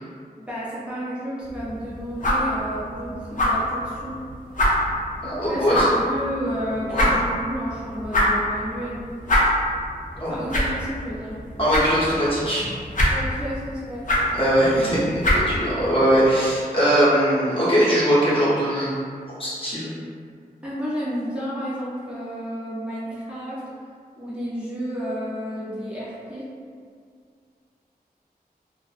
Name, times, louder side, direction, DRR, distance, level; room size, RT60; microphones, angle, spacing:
voice 1, 0.5-4.2 5.5-9.0 10.3-11.3 13.1-14.1 20.6-23.6 24.2-26.4, equal, 5° right, -10 dB, 0.5 m, -31 dB
sound 1, 1.4-16.3, left 1 dB, 55° left, 0.5 m, -25 dB
voice 2, 5.2-5.9 6.9-7.1 10.2-10.3 11.6-12.7 14.3-19.0 19.3-19.9, equal, 35° left, -10 dB, 0.8 m, -21 dB
2.6 x 2.0 x 2.3 m, 2.1 s
wide cardioid pair, 95°, 16 cm